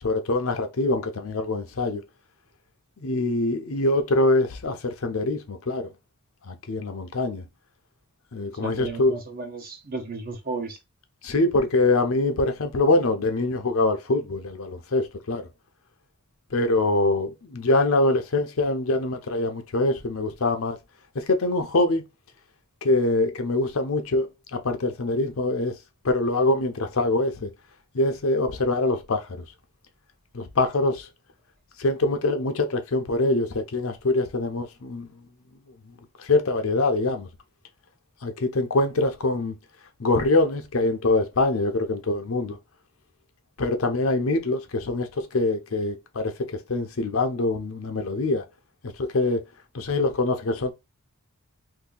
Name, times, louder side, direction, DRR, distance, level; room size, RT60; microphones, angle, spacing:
voice 1, 0.0-2.0 3.0-5.9 6.5-7.4 8.3-9.1 11.2-15.4 16.5-20.8 21.1-22.0 22.8-25.7 26.0-27.5 27.9-29.4 30.3-31.1 31.8-35.1 36.2-37.3 38.2-39.5 40.0-42.6 43.6-46.3 46.7-48.4 49.1-49.4 49.7-50.7, left 2 dB, 70° left, 0.7 m, -24 dB
voice 2, 8.6-10.8, right 3 dB, 45° right, 1.0 m, -34 dB
2.7 x 2.7 x 3.8 m
head